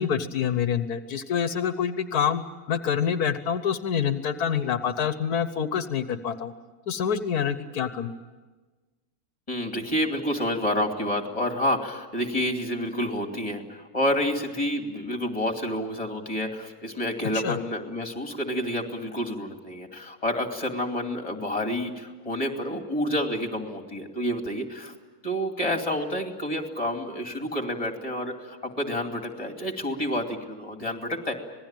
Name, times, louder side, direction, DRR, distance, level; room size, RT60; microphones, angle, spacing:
voice 1, 0.0-2.4 2.7-6.5 6.9-8.1 17.3-17.6, left 8 dB, 80° left, 10 dB, 1.5 m, -26 dB
voice 2, 9.5-24.9 25.2-31.3, equal, 25° left, 4 dB, 2.7 m, -29 dB
26.5 x 19.5 x 9.1 m, 1.3 s
omnidirectional pair, 1.6 m